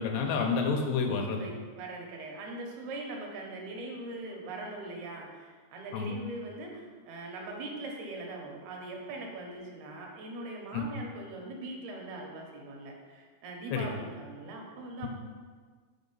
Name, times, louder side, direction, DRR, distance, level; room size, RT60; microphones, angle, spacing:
voice 1, 0.0-1.4 5.9-6.1 10.7-10.8 13.7-13.9, left 5 dB, 80° left, 2 dB, 2.7 m, -29 dB
voice 2, 1.3-15.1, right 2 dB, 75° right, 0 dB, 2.7 m, -41 dB
6.5 x 5.0 x 5.3 m, 1.5 s
omnidirectional pair, 4.9 m